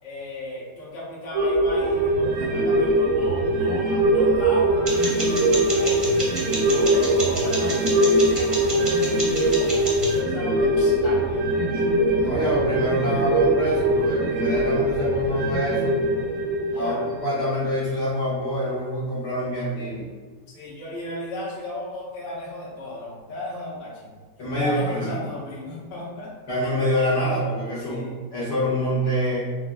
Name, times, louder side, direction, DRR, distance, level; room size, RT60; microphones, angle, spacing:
voice 1, 0.0-6.1 6.6-12.0 16.7-17.0 20.5-24.1 24.6-26.3 27.9-28.2, left 1 dB, 40° left, -7 dB, 1.1 m, -35 dB
sound 1, 1.3-18.1 18.5-18.6, right 1 dB, 70° right, 0.9 m, -22 dB
sound 2, 4.9-10.2, right 1 dB, 35° right, 0.5 m, -31 dB
voice 2, 12.2-16.0 16.7-20.1 24.4-25.3 26.5-28.1 28.3-29.4, equal, 70° left, -9 dB, 2.0 m, -26 dB
6.5 x 2.3 x 2.2 m, 1.4 s
omnidirectional pair, 1.9 m